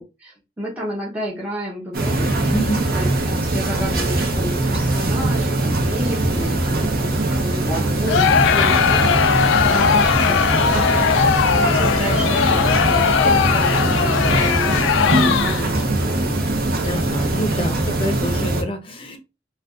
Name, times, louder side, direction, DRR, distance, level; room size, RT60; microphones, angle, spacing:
voice 1, 0.0-2.6 2.9-16.6 16.9-17.4, equal, 10° right, -5 dB, 0.7 m, -31 dB
sound 1, 1.9-18.6, right 2 dB, 55° right, 0.7 m, -21 dB
voice 2, 2.5-2.8 15.1-15.5 16.8-19.2, equal, 30° left, 5 dB, 0.5 m, -27 dB
Crowd, 8.1-15.8, left 7 dB, 75° left, 0.3 m, -19 dB
2.4 x 2.3 x 3.5 m, 0.27 s
head